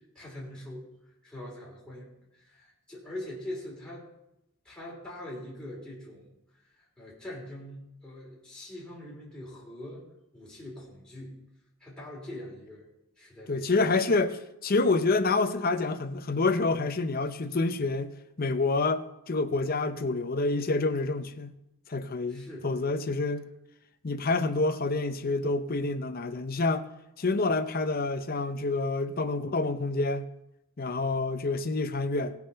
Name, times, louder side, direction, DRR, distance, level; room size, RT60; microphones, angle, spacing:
voice 1, 0.1-0.9 1.2-4.1 4.6-6.3 7.0-10.0 10.3-11.4 11.8-12.8 13.2-13.7 22.3-22.7, left 1 dB, 5° left, 3.2 m, -42 dB
voice 2, 13.5-21.5 21.9-23.4 24.0-26.9 27.2-30.3 30.8-32.3, left 3 dB, 40° left, 0.7 m, -28 dB
17.0 x 6.0 x 5.6 m
head